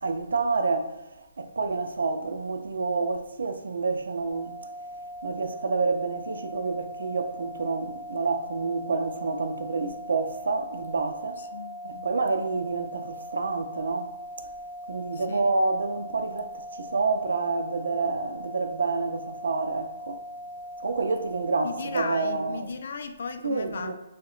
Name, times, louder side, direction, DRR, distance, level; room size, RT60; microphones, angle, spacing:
voice 1, 0.0-4.6 5.2-11.4 11.8-14.1 14.4-14.5 14.9-20.2 20.8-22.7 23.4-23.9, right 3 dB, 85° right, 0.4 m, -28 dB
sound 1, 4.3-22.0, equal, 30° left, 1.2 m, -40 dB
voice 2, 11.4-12.1 15.1-15.6 21.6-23.9, left 4 dB, 65° left, 0.3 m, -36 dB
2.8 x 2.1 x 3.7 m
hypercardioid pair, 160°, 0 cm